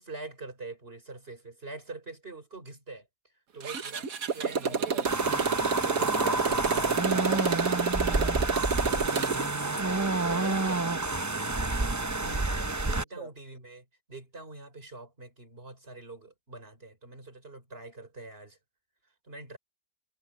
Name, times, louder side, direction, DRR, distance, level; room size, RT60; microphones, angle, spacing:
voice 1, 0.0-3.1 3.5-4.9 5.8-7.7 9.4-11.3 12.2-18.6 19.3-19.6, right 3 dB, 45° right, 4.5 m, -44 dB
Motorcycle, 3.6-9.5, right 6 dB, 80° right, 1.7 m, -29 dB
voice 2, 4.6-5.3 7.1-7.6 7.8-8.7 13.0-13.3, right 3 dB, 60° right, 4.3 m, -45 dB
sound 1, 5.0-13.0, right 2 dB, 15° right, 0.6 m, -29 dB
omnidirectional pair, 1.5 m